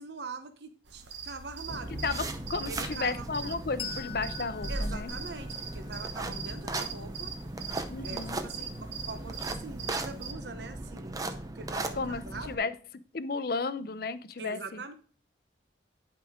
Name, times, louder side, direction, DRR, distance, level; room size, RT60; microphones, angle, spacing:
voice 1, 0.0-2.3 2.6-3.2 4.7-7.3 8.0-12.7 14.4-14.9, right 3 dB, 65° right, 9 dB, 0.7 m, -43 dB
sound 1, 0.9-10.3, right 6 dB, 80° right, 1.2 m, -42 dB
sound 2, 1.7-12.5, right 2 dB, 20° right, 0.6 m, -37 dB
voice 2, 2.0-5.1 7.9-8.4 12.0-12.7 13.1-14.8, left 4 dB, 55° left, 14 dB, 0.5 m, -33 dB
Bell, 3.8-6.9, left 11 dB, 30° left, 1.0 m, -45 dB
11.0 x 4.9 x 3.6 m, 0.40 s
head